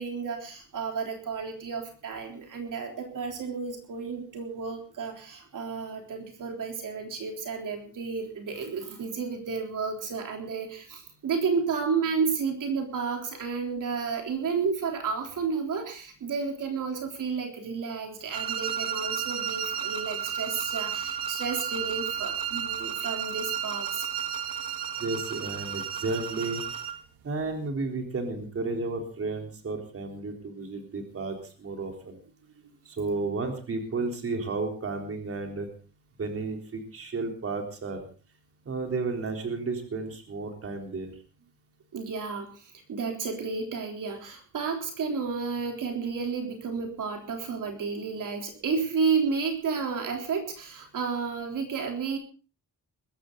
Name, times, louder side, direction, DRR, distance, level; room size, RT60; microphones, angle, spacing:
voice 1, 0.0-24.1 41.9-52.2, right 5 dB, 65° right, 3 dB, 3.7 m, -31 dB
sound 1, 18.3-27.0, right 9 dB, 85° right, 1.5 m, -32 dB
voice 2, 25.0-26.6 27.2-32.2 32.9-35.7 36.2-38.0 38.7-41.2, right 3 dB, 40° right, 3 dB, 3.8 m, -32 dB
21.0 x 15.0 x 3.9 m, 0.37 s
wide cardioid pair, 150°, 34 cm